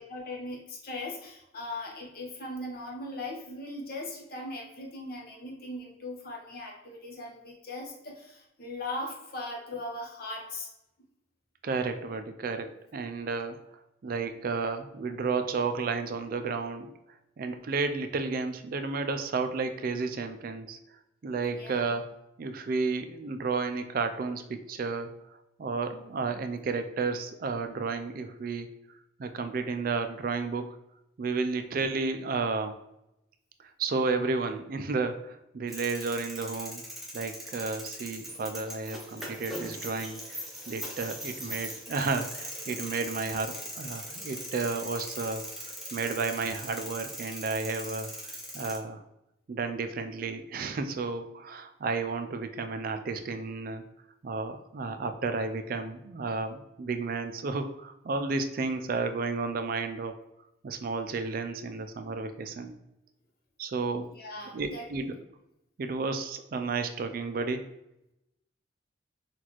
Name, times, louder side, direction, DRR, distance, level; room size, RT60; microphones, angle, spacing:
voice 1, 0.0-10.7 21.5-22.0 41.4-41.5 63.9-64.9, left 1 dB, 50° left, -1 dB, 0.9 m, -39 dB
voice 2, 11.6-13.6 14.0-16.9 17.4-20.8 21.2-22.1 22.4-25.1 25.6-28.7 29.2-30.7 31.2-32.7 33.6-36.8 37.1-45.5 45.9-49.0 49.5-53.8 54.2-60.2 60.6-62.7 63.6-64.1 64.5-65.2 65.8-67.7, right 4 dB, 50° right, 8 dB, 0.4 m, -32 dB
sound 1, 35.7-48.8, equal, ahead, 0.7 m, -40 dB
5.9 x 2.4 x 3.0 m, 0.88 s
head